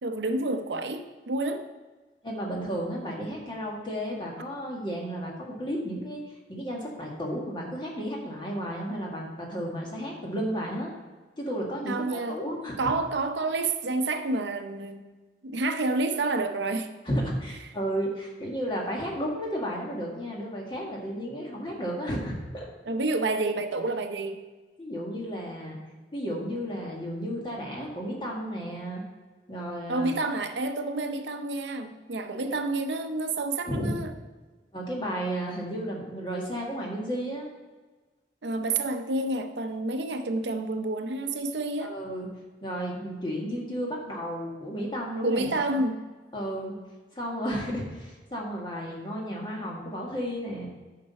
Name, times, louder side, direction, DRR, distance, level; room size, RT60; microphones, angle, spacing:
voice 1, 0.0-1.7 11.9-12.4 12.8-15.1 15.4-16.9 22.9-24.4 29.9-34.1 38.4-42.0 45.2-46.0, right 2 dB, 85° right, 7 dB, 0.7 m, -29 dB
voice 2, 2.2-6.2 6.5-10.9 11.4-12.9 17.0-22.7 24.8-25.8 26.1-29.0 29.5-30.1 32.3-32.6 33.7-33.9 34.7-37.5 41.8-45.7 46.3-46.8 47.1-50.7, equal, 25° left, -2 dB, 1.7 m, -33 dB
9.4 x 5.9 x 4.1 m, 1.3 s
head